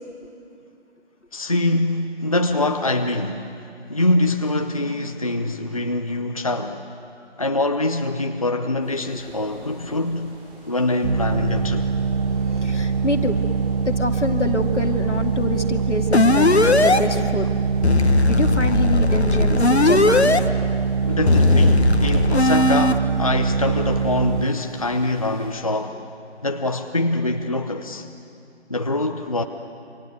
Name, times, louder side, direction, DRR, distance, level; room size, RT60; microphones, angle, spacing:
voice 1, 1.3-3.5 3.9-6.8 7.4-10.4 10.6-11.9 21.0-26.0 26.4-28.1 28.7-29.4, left 2 dB, 30° left, 6 dB, 0.8 m, -24 dB
sound 1, 8.8-25.5, right 1 dB, 10° right, 4.0 m, -44 dB
sound 2, 11.0-24.5, right 5 dB, 50° right, 0.9 m, -23 dB
voice 2, 12.6-13.4 13.9-17.5 18.3-20.3, left 2 dB, 85° left, 4 dB, 2.5 m, -26 dB
sound 3, 16.1-17.0 17.8-20.4 21.3-22.9, left 2 dB, 65° left, 1.4 m, -17 dB
28.5 x 25.5 x 8.1 m, 2.5 s
figure-of-eight pair, 165°, 35 cm